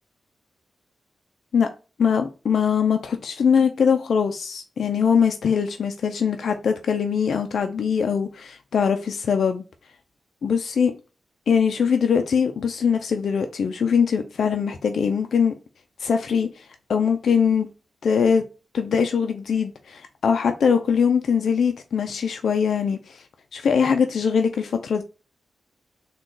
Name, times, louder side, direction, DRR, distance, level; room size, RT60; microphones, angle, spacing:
voice 1, 2.0-9.6 10.4-10.9 11.5-15.5 16.0-17.7 18.0-18.4 18.7-23.2 23.5-25.0, left 6 dB, 75° left, 0.4 m, -22 dB
3.7 x 2.3 x 3.8 m
cardioid pair, 90°, 0 cm